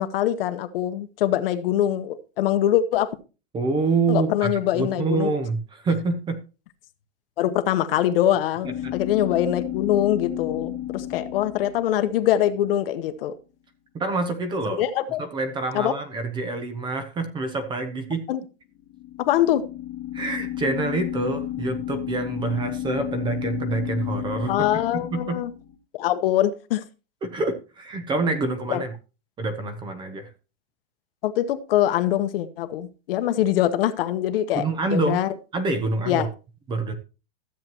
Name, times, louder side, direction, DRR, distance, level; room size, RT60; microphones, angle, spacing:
voice 1, 0.0-3.1 4.1-5.3 7.4-13.4 14.8-15.2 15.7-15.9 18.3-18.4 19.2-19.7 24.5-25.5 25.9-26.8 28.7-28.8 31.2-34.6 34.9-35.3 36.1-36.3, left 12 dB, 60° left, 10 dB, 1.1 m, -23 dB
voice 2, 3.5-6.4 8.6-8.9 13.9-14.8 15.2-18.3 20.1-25.4 27.2-28.9 29.4-30.3 34.5-35.2 35.5-36.3 36.7-37.0, right 3 dB, 15° right, 10 dB, 0.7 m, -27 dB
sound 1, 8.6-12.7 18.8-25.8, left 13 dB, 20° left, 1.0 m, -32 dB
13.0 x 7.6 x 3.0 m, 0.32 s
supercardioid pair, 155°, 32 cm